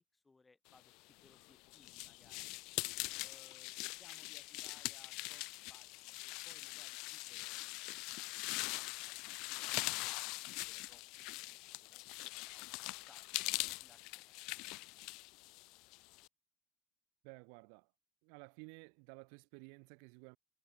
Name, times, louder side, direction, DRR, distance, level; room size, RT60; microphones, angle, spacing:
voice 1, 0.0-2.5 3.2-5.4 5.7-8.0 8.5-12.7 13.0-14.6 15.0-15.1, left 3 dB, 15° left, 4.8 m, -68 dB
sound 1, 1.1-16.3, left 24 dB, 75° left, 0.5 m, -43 dB
voice 2, 17.2-17.9 18.2-20.4, right 40 dB or more, 85° right, 1.0 m, -54 dB
cardioid pair, 140°, 0 cm